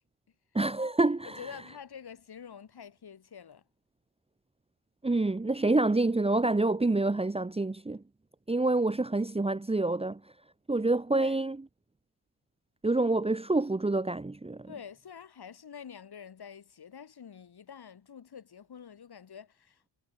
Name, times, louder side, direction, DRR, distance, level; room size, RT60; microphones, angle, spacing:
voice 1, 0.5-1.4 5.0-8.0 8.5-10.2 10.7-11.6 12.8-14.7, right 2 dB, 10° right, 1.2 m, -27 dB
voice 2, 1.2-3.6 11.1-11.4 14.7-19.9, left 7 dB, 50° left, 6.8 m, -47 dB
cardioid pair, 95°, 47 cm